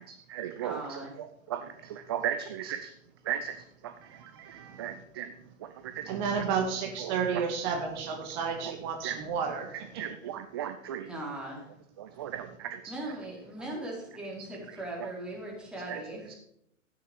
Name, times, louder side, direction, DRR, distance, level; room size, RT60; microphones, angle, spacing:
voice 1, 0.0-2.9 3.2-5.3 5.6-6.2 7.0-7.4 8.7-8.8 9.0-9.2 9.7-11.1 12.0-13.0 14.7-15.1 15.9-16.4, right 10 dB, 20° right, 9 dB, 0.4 m, -37 dB
voice 2, 0.6-1.1 11.1-11.7 12.9-16.3, right 1 dB, ahead, -5 dB, 3.9 m, -39 dB
voice 3, 4.5-4.9 6.1-10.0, right 6 dB, 35° right, 4 dB, 1.7 m, -32 dB
13.0 x 9.3 x 5.0 m, 0.77 s
figure-of-eight pair, 115°, 38 cm